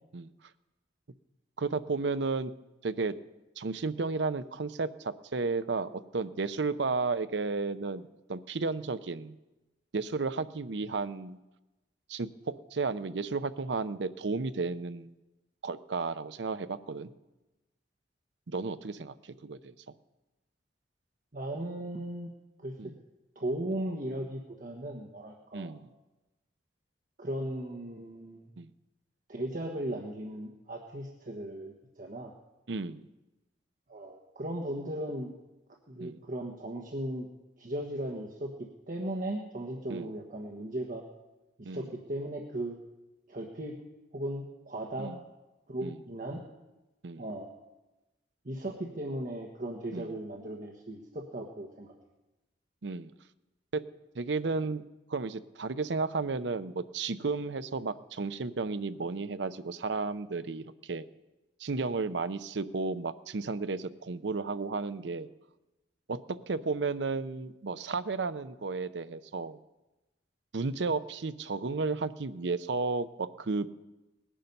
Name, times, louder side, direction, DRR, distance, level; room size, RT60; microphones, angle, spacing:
voice 1, 1.6-2.5 2.8-3.1 3.6-9.3 9.9-11.4 12.1-12.3 12.7-15.1 15.6-17.1 18.5-19.1 19.4-19.7 22.8-22.9 25.5-25.9 28.6-28.7 32.7-33.1 36.0-36.2 39.9-40.1 41.6-41.9 45.0-45.2 45.8-46.0 47.0-47.2 49.9-50.1 52.8-53.1 53.7-53.8 54.1-61.0 61.6-65.3 66.1-69.6 70.5-73.7, right 4 dB, 70° right, 13 dB, 0.6 m, -33 dB
voice 2, 21.3-22.3 22.6-22.9 23.3-25.7 27.2-28.5 29.3-32.3 33.9-35.3 35.9-37.3 37.6-41.0 41.6-42.8 43.3-43.8 44.1-45.1 45.7-46.4 47.2-47.5 48.4-51.9, right 1 dB, 50° right, 1 dB, 1.3 m, -37 dB
19.5 x 10.0 x 5.4 m, 1.0 s
head